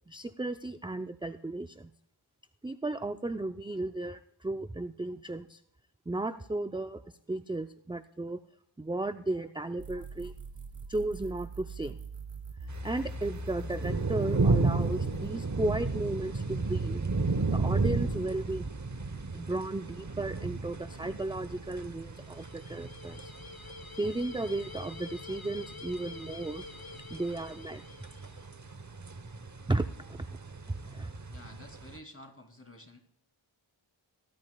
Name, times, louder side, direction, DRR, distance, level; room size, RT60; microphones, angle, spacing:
voice 1, 0.1-1.9 2.6-5.6 6.1-7.0 7.3-8.4 8.8-10.3 10.9-12.0 12.8-17.0 17.5-18.7 19.3-23.3 24.0-26.6 27.1-27.8 29.7-30.3 30.8-31.1, right 2 dB, 10° right, 9 dB, 0.4 m, -34 dB
sound 1, 9.8-15.4, right 2 dB, 80° right, 1.4 m, -42 dB
sound 2, 12.7-32.0, right 3 dB, 35° right, 0.9 m, -34 dB
sound 3, 22.1-28.5, left 3 dB, 45° left, 1.6 m, -47 dB
voice 2, 31.3-33.0, left 1 dB, 25° left, 4 dB, 2.7 m, -51 dB
19.5 x 13.0 x 2.3 m, 0.72 s
wide cardioid pair, 40°, 50 cm